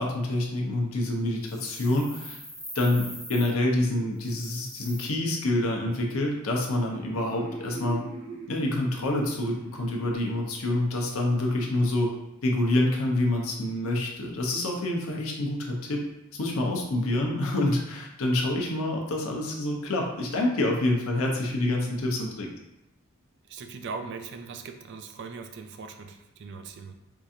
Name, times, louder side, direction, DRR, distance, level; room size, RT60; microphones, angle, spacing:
voice 1, 0.0-2.4 2.7-8.0 8.5-12.1 12.4-16.0 16.3-22.5, left 1 dB, 70° left, 0 dB, 0.7 m, -27 dB
sound 1, 1.4-3.5 4.2-5.0, equal, ahead, 0.6 m, -42 dB
sound 2, 4.8-10.2, right 3 dB, 80° right, 0.9 m, -44 dB
voice 2, 23.4-26.9, right 5 dB, 55° right, 7 dB, 0.3 m, -40 dB
4.6 x 2.4 x 2.7 m, 0.89 s
head